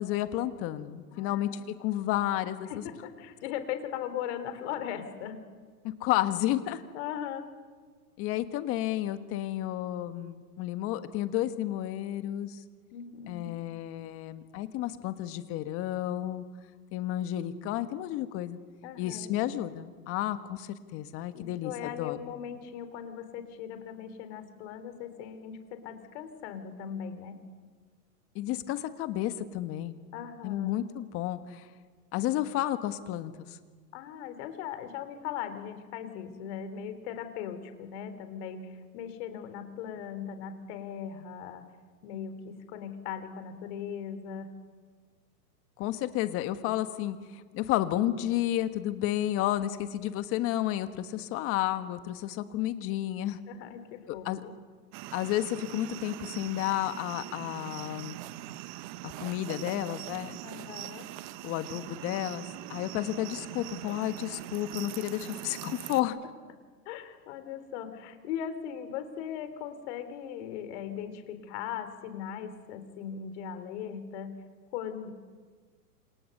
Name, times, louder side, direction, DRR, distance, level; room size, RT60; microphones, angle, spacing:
voice 1, 0.0-1.5 1.8-2.8 5.8-6.8 8.2-12.6 13.3-16.4 16.9-18.6 19.0-22.2 28.3-30.0 30.4-31.7 32.1-33.6 45.8-53.4 54.1-54.4 55.1-58.2 59.0-60.4 61.4-62.4 62.7-66.2, left 13 dB, 25° left, 10 dB, 1.5 m, -31 dB
voice 2, 1.1-1.7 2.7-5.4 6.9-7.5 12.9-13.5 18.8-19.3 21.3-27.4 30.1-30.8 33.9-41.7 42.0-44.5 53.5-54.5 60.4-61.1 63.9-64.0 66.9-74.4 74.7-75.1, left 8 dB, 40° left, 9 dB, 3.7 m, -39 dB
sound 1, 54.9-66.0, right 16 dB, 30° right, 0.8 m, -42 dB
28.0 x 27.5 x 6.7 m, 1.5 s
hypercardioid pair, 140°, 49 cm